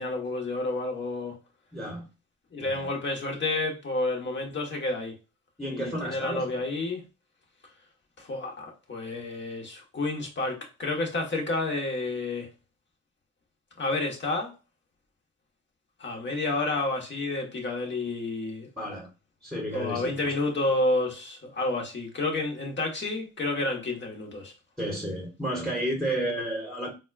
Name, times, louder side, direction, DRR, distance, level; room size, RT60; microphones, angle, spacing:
voice 1, 0.0-1.3 2.5-5.1 5.7-7.0 8.2-12.5 13.8-14.5 16.0-18.7 19.7-24.5, left 2 dB, 40° left, 1.3 m, -30 dB
voice 2, 1.7-2.1 2.6-2.9 5.6-6.7 18.8-19.1 19.4-20.3 24.8-26.9, right 1 dB, ahead, 1.2 m, -32 dB
4.0 x 2.3 x 2.4 m
cardioid pair, 90°, 30 cm